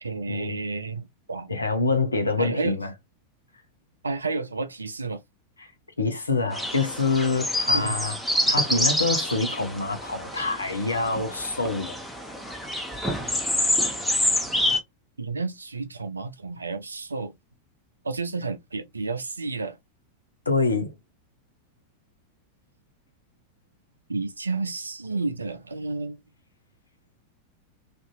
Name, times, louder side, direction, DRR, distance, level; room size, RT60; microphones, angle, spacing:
voice 1, 0.0-1.5 2.4-2.8 4.0-5.2 7.7-8.0 15.2-17.3 18.0-19.8 24.1-26.2, right 3 dB, 75° right, 0.4 m, -31 dB
voice 2, 1.5-2.9 5.6-5.7 6.0-8.2 8.5-12.0 20.5-20.9, left 3 dB, 80° left, 0.7 m, -26 dB
sound 1, 6.5-14.8, left 1 dB, ahead, 0.8 m, -27 dB
2.6 x 2.6 x 2.3 m
figure-of-eight pair, 90°, 0 cm